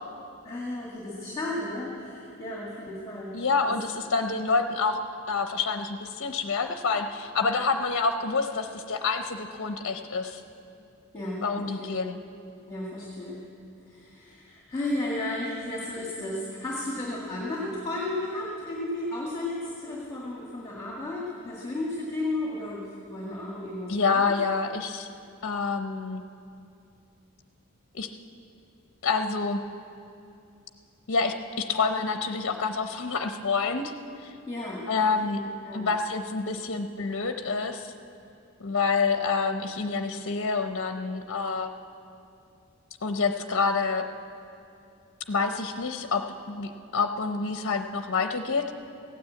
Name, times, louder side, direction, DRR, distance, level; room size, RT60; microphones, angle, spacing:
voice 1, 0.4-3.4 3.7-3.8 11.1-12.0 12.7-13.4 13.9-24.2 34.5-35.9, left 1 dB, 20° left, -4 dB, 1.9 m, -34 dB
voice 2, 3.3-5.0 5.3-10.4 11.4-12.2 23.9-25.1 25.4-26.2 27.9-28.1 29.0-29.6 31.1-33.9 34.2-34.3 34.9-35.4 35.7-37.9 38.6-41.7 43.0-44.1 45.3-48.7, left 4 dB, 55° left, 7 dB, 0.7 m, -27 dB
15.5 x 9.4 x 8.5 m, 2.6 s
head